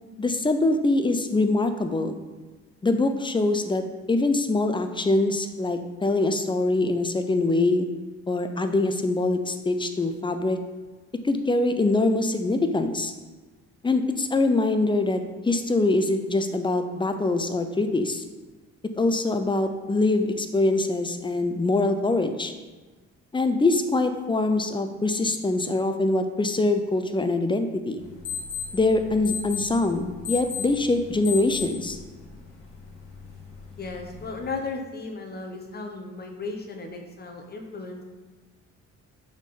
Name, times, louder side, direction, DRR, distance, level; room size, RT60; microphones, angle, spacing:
voice 1, 0.2-2.2 2.8-7.9 8.3-10.6 11.2-13.1 13.8-18.2 19.0-22.5 23.3-28.0 28.7-32.0, left 2 dB, 15° left, 8 dB, 0.5 m, -24 dB
sound 1, 28.0-34.5, left 6 dB, 70° left, 1.9 m, -37 dB
voice 2, 33.8-38.0, left 3 dB, 30° left, 2 dB, 1.0 m, -35 dB
6.0 x 3.8 x 4.2 m, 1.3 s
cardioid pair, 90°, 30 cm